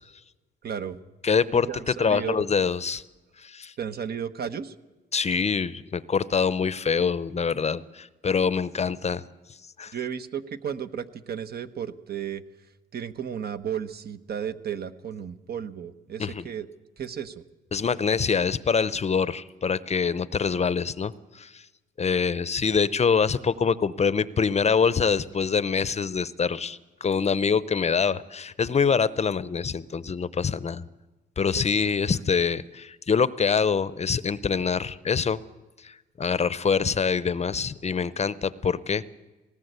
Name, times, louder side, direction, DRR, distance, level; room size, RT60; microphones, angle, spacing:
voice 1, 0.6-1.0 1.7-2.5 3.8-4.7 9.9-12.4 12.9-16.7 17.0-17.4 31.5-31.6, right 8 dB, 50° right, 11 dB, 1.2 m, -33 dB
voice 2, 1.2-1.7 2.0-3.0 3.4-3.7 5.1-9.2 9.8-9.9 16.2-16.4 17.7-21.6 22.0-30.8 31.4-35.4 35.8-39.0, left 6 dB, 35° left, 17 dB, 0.7 m, -25 dB
19.0 x 18.0 x 8.1 m, 1.1 s
cardioid pair, 90°, 20 cm